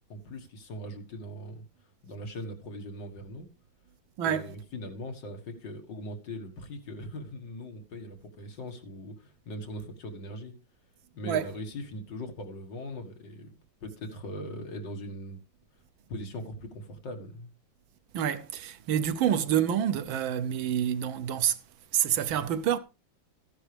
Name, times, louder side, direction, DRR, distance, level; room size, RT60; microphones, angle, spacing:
voice 1, 0.1-1.7 2.0-3.5 4.2-10.5 11.1-13.5 13.8-15.4 16.1-17.5, left 1 dB, 65° left, 2.3 m, -40 dB
voice 2, 4.2-4.5 11.2-11.5 18.1-21.6 21.9-22.8, right 9 dB, 85° right, 1.6 m, -27 dB
14.5 x 10.0 x 3.4 m
omnidirectional pair, 2.1 m